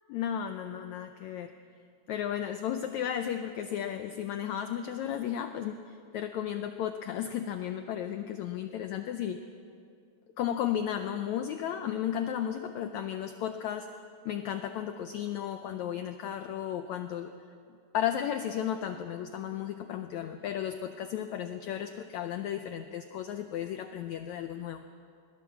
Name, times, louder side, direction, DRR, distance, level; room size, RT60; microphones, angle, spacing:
voice 1, 0.1-1.5 2.1-9.4 10.4-13.9 14.3-17.3 17.9-24.9, left 10 dB, 80° left, 8 dB, 1.7 m, -34 dB
21.5 x 16.5 x 7.3 m, 2.4 s
omnidirectional pair, 4.0 m